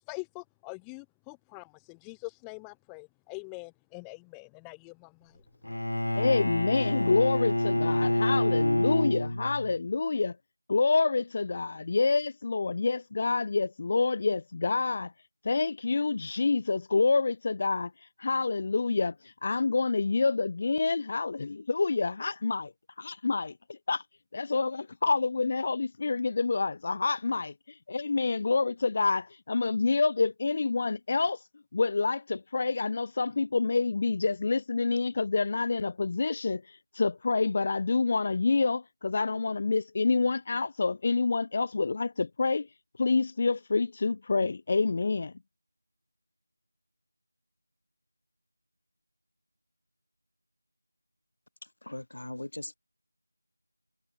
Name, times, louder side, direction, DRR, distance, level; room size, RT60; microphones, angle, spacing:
voice 1, 0.0-5.4, left 40 dB or more, 5° left, 0.8 m, -44 dB
Bowed string instrument, 5.6-9.8, left 1 dB, 75° left, 1.5 m, -27 dB
voice 2, 6.1-10.3 10.7-15.1 15.4-22.7 23.0-24.0 24.3-31.4 31.7-42.7 43.0-45.3, left 4 dB, 20° left, 1.3 m, -27 dB
voice 3, 51.8-52.8, left 1 dB, 50° left, 5.3 m, -39 dB
figure-of-eight pair, 180°, 0 cm